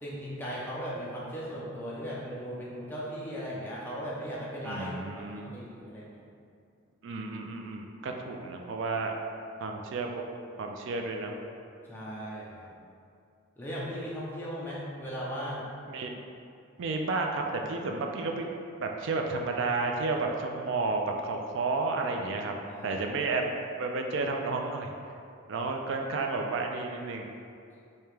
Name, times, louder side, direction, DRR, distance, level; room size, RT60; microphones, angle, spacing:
voice 1, 0.0-6.2 11.9-12.7 13.6-15.7 22.7-23.0 25.6-25.7, equal, 10° left, -7 dB, 0.5 m, -37 dB
voice 2, 4.6-5.6 7.0-9.2 9.6-10.2 10.6-11.3 15.9-16.2 16.8-18.5 18.8-22.5 22.8-23.4 23.8-24.9 25.5-27.3, right 3 dB, 60° right, 3 dB, 0.3 m, -31 dB
3.4 x 2.8 x 3.1 m, 2.5 s
head